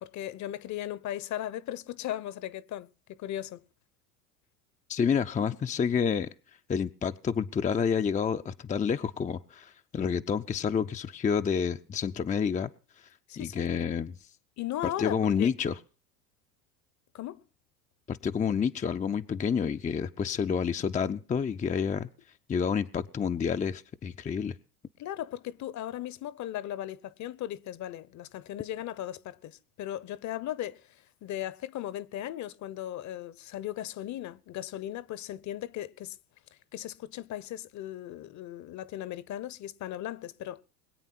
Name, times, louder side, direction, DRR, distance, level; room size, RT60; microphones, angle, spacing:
voice 1, 0.0-3.6 13.3-13.7 14.6-15.5 17.1-17.4 25.0-30.9 31.2-36.2 36.7-40.6, left 12 dB, 40° left, 1.0 m, -37 dB
voice 2, 4.9-6.3 6.7-12.7 13.4-14.2 14.8-15.8 18.1-22.1 22.5-24.6, left 6 dB, 15° left, 0.6 m, -29 dB
21.5 x 9.0 x 5.8 m
hypercardioid pair, 85°, 45 cm